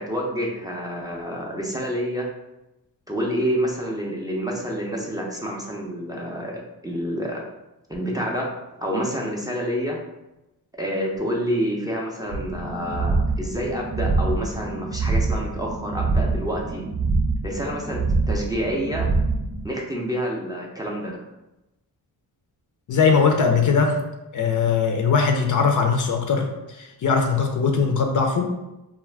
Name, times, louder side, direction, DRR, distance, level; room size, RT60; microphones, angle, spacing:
voice 1, 0.0-2.3 3.1-7.4 7.9-8.5 8.8-10.0 10.7-16.8 17.4-19.1 19.6-21.2, equal, 10° right, -3 dB, 0.4 m, -28 dB
sound 1, 12.3-19.7, right 3 dB, 75° right, 0.6 m, -25 dB
voice 2, 22.9-24.0 24.3-26.5 26.8-28.4, left 5 dB, 50° left, 3 dB, 0.5 m, -20 dB
2.3 x 2.1 x 3.2 m, 0.96 s
cardioid pair, 80°, 40 cm